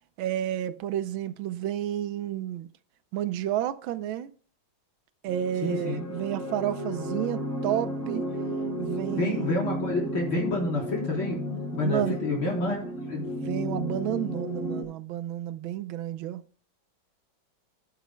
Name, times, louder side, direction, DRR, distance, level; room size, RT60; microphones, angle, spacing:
voice 1, 0.2-2.7 3.1-4.3 5.2-8.3 8.8-9.5 11.8-12.2 12.5-12.6 13.2-16.4, right 11 dB, 90° right, 1.5 m, -31 dB
sound 1, 5.3-14.8, equal, 40° left, 5.4 m, -33 dB
voice 2, 5.6-6.0 9.2-13.2, left 2 dB, 90° left, 4.7 m, -29 dB
19.0 x 7.3 x 2.2 m
omnidirectional pair, 2.1 m